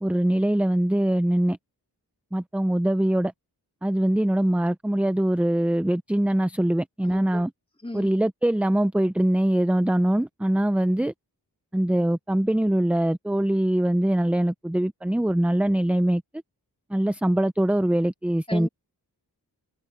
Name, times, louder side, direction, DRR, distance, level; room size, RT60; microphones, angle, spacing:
voice 1, 0.0-1.6 2.3-3.3 3.8-7.5 7.9-11.1 11.7-16.2 16.9-18.7, right 1 dB, 5° right, 0.4 m, -23 dB
voice 2, 7.0-7.4 7.8-8.1 18.5-18.7, left 1 dB, 15° left, 3.8 m, -35 dB
wide cardioid pair, 85°, 39 cm